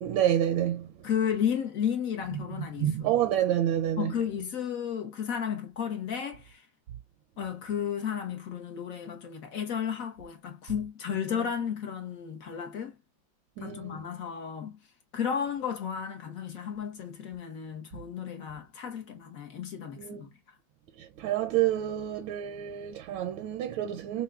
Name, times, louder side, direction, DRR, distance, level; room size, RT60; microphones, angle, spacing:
voice 1, 0.0-0.9 2.3-4.1 13.6-14.0 20.0-20.3 21.0-24.2, right 11 dB, 80° right, 1.4 m, -28 dB
voice 2, 1.0-3.1 4.0-6.6 7.4-13.0 13.6-14.8 15.1-20.3, left 8 dB, 55° left, 1.1 m, -33 dB
5.7 x 2.2 x 2.3 m
omnidirectional pair, 2.1 m